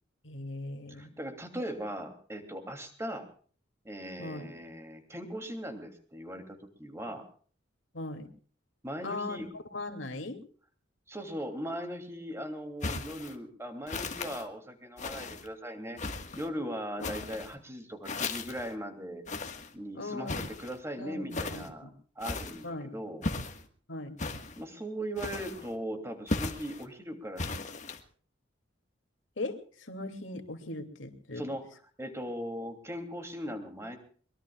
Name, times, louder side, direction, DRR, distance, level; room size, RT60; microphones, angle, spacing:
voice 1, 0.2-1.1 4.2-4.5 7.9-8.3 9.0-9.4 9.7-10.4 17.0-17.3 19.9-20.5 21.0-21.9 22.6-22.9 23.9-24.1 29.4-31.4, left 2 dB, 80° left, 6 dB, 2.7 m, -39 dB
voice 2, 0.9-3.3 3.8-7.2 8.8-9.5 11.1-16.0 16.4-19.2 19.7-21.9 22.2-23.3 24.6-27.6 31.3-31.7 32.0-34.0, equal, 15° right, 5 dB, 2.9 m, -39 dB
sound 1, 12.8-13.3 13.9-14.4 15.0-15.5 16.0-16.5 17.0-17.5 18.0-18.7 19.3-19.7 20.3-20.8 21.3-21.7 22.2-22.7 23.2-23.6 24.2-24.6 25.2-25.7 26.3-26.8 27.4-28.0, left 3 dB, 40° left, 1.6 m, -36 dB
23.0 x 22.5 x 2.4 m, 0.44 s
head